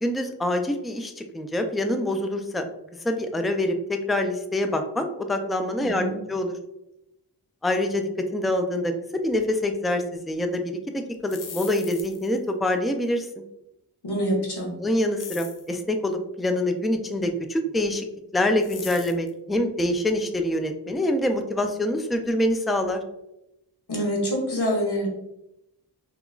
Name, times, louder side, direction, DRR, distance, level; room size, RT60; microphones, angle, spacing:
voice 1, 0.0-2.7 3.0-6.6 7.6-8.9 9.2-13.3 14.8-18.1 18.3-23.0, left 1 dB, ahead, 6 dB, 0.3 m, -25 dB
voice 2, 5.8-6.2 14.0-14.7 23.9-25.1, equal, 70° left, -3 dB, 1.3 m, -26 dB
sound 1, 11.1-12.4 15.2-15.7 18.6-19.3, left 6 dB, 50° left, 0.5 m, -40 dB
3.6 x 2.9 x 2.3 m, 0.87 s
wide cardioid pair, 50°, 40 cm